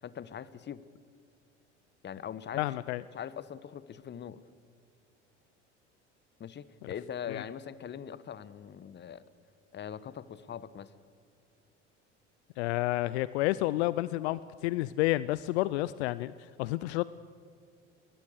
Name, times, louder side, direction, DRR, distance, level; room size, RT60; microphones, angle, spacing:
voice 1, 0.0-0.8 2.0-2.6 3.1-4.4 6.4-9.2 9.7-10.9, left 8 dB, 30° left, 17 dB, 1.1 m, -41 dB
voice 2, 2.6-3.0 6.8-6.9 7.3-7.4 12.6-16.3 16.6-17.0, left 18 dB, 65° left, 18 dB, 0.6 m, -30 dB
21.0 x 20.5 x 6.6 m, 2.4 s
figure-of-eight pair, 70°, 36 cm